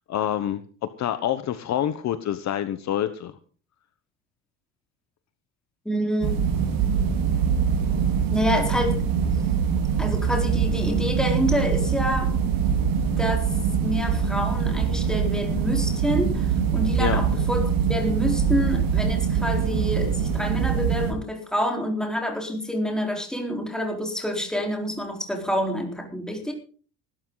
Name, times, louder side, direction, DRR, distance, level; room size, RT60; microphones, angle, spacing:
voice 1, 0.1-3.3 17.0-17.2, left 11 dB, 45° left, 11 dB, 1.1 m, -27 dB
voice 2, 5.8-6.5 8.3-9.4 10.0-12.3 13.2-13.5 13.8-17.6 17.9-26.5, equal, ahead, 2 dB, 4.1 m, -27 dB
sound 1, 6.2-21.1, right 7 dB, 65° right, 4.6 m, -23 dB
19.0 x 12.5 x 4.0 m, 0.41 s
cardioid pair, 140°, 38 cm